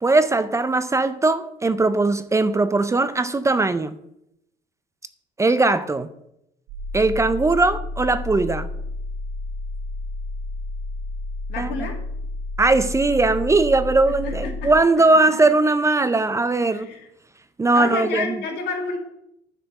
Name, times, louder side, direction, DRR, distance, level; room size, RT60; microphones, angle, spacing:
voice 1, 0.0-4.0 5.4-6.1 6.9-8.7 11.6-11.9 12.6-16.9 17.6-18.4, right 3 dB, 15° right, 0.5 m, -19 dB
sound 1, 6.7-14.7, left 2 dB, 90° right, 2.1 m, -31 dB
voice 2, 11.5-12.0 14.1-14.7 15.1-15.4 16.7-17.1 17.7-19.0, left 4 dB, 80° left, 2.1 m, -30 dB
10.0 x 5.0 x 6.7 m
cardioid pair, 110°, 17 cm